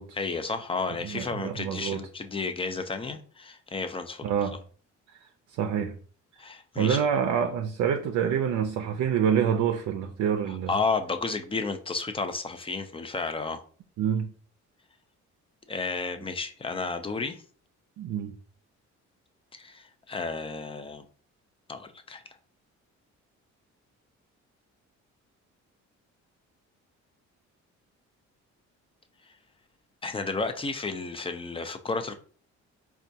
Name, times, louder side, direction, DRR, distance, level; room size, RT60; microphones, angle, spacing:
voice 1, 0.1-4.3 6.4-7.0 10.5-13.6 15.7-17.4 19.5-21.0 21.7-22.2 30.0-32.2, left 4 dB, 20° left, 0.4 m, -32 dB
voice 2, 1.0-2.0 4.2-4.6 5.6-6.0 6.8-10.7 14.0-14.3 18.0-18.3, right 8 dB, 70° right, 0.5 m, -26 dB
4.2 x 2.3 x 2.7 m
cardioid pair, 90°, 30 cm